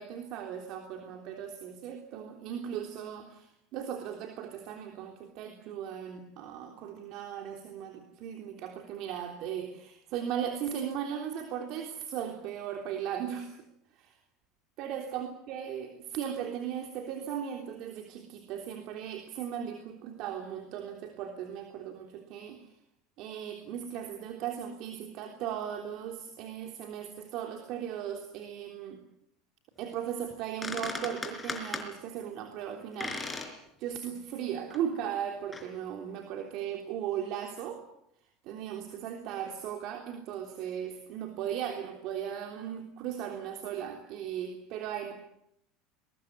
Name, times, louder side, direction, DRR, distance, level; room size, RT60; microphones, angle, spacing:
voice 1, 0.0-13.5 14.0-14.2 14.8-22.6 23.2-29.0 29.8-33.4 33.8-37.8 38.4-45.1, right 9 dB, 55° right, 4 dB, 3.4 m, -37 dB
sound 1, 30.3-30.4 30.6-31.9 33.0-33.5 33.9-34.0 34.7-34.8 35.5-35.7, left 3 dB, 15° left, 4.5 m, -37 dB
22.0 x 21.5 x 9.5 m, 0.78 s
supercardioid pair, 130°, 0 cm